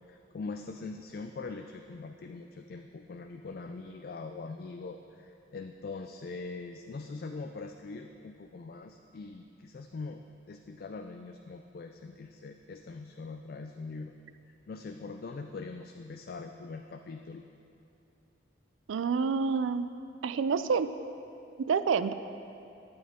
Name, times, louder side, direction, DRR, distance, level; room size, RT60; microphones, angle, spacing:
voice 1, 0.1-14.1 14.7-17.4, left 3 dB, 50° left, 5 dB, 0.3 m, -42 dB
voice 2, 18.9-19.9 20.2-20.9 21.6-22.1, right 5 dB, 80° right, 12 dB, 0.4 m, -28 dB
12.0 x 8.7 x 3.6 m, 2.7 s
head